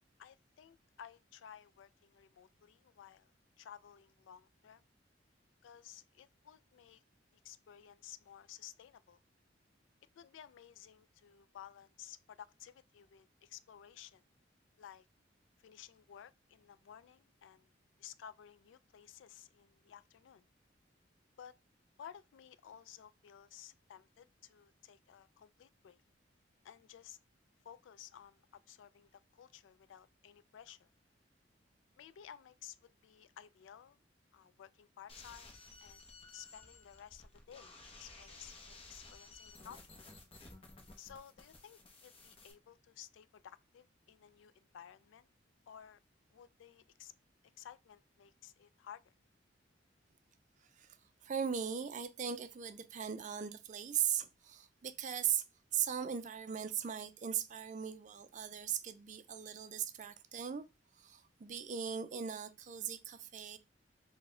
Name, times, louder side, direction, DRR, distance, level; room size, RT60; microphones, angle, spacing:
voice 1, 0.2-4.9 5.6-7.0 7.3-9.2 10.2-14.2 14.8-15.1 15.6-17.7 18.0-20.5 21.4-21.6 22.0-26.0 26.6-27.2 27.6-30.9 32.0-34.0 34.3-36.0 36.3-37.7 38.0-39.9 41.0-45.3 45.7-46.0 46.3-47.1 47.6-49.1, left 9 dB, 85° left, 0.3 m, -55 dB
sound 1, 35.1-42.5, left 3 dB, 30° left, 0.7 m, -55 dB
voice 2, 50.6-51.0 51.2-55.4 55.7-60.7 60.9-63.6, right 8 dB, 40° right, 0.4 m, -38 dB
4.0 x 2.2 x 3.7 m
head